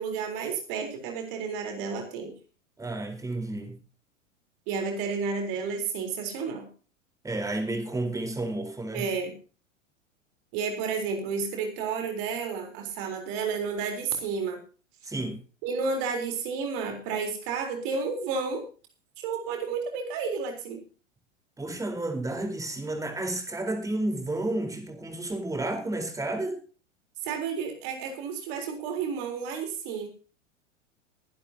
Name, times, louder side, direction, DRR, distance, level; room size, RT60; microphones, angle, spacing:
voice 1, 0.0-2.4 4.7-6.7 8.9-9.3 10.5-14.6 15.6-18.6 19.2-20.8 27.2-30.1, right 5 dB, 45° right, 4 dB, 3.8 m, -31 dB
voice 2, 2.8-3.7 7.2-9.1 15.0-15.4 21.6-26.6, right 2 dB, 10° right, 5 dB, 4.1 m, -31 dB
21.5 x 11.5 x 2.8 m, 0.36 s
figure-of-eight pair, 90°, 38 cm